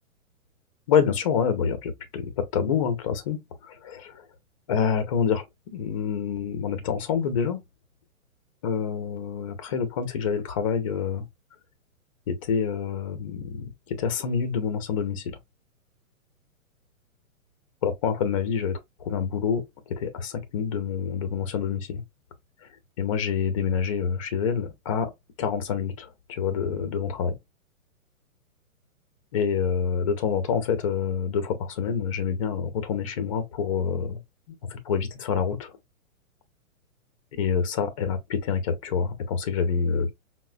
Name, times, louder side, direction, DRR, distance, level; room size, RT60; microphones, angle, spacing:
voice 1, 0.9-4.3 4.7-7.6 8.6-11.3 12.3-15.4 17.8-22.0 23.0-25.1 25.4-27.3 29.3-34.2 34.5-35.7 37.4-40.1, left 6 dB, 25° left, 0.5 m, -27 dB
4.7 x 2.1 x 2.3 m
hypercardioid pair, 150°, 43 cm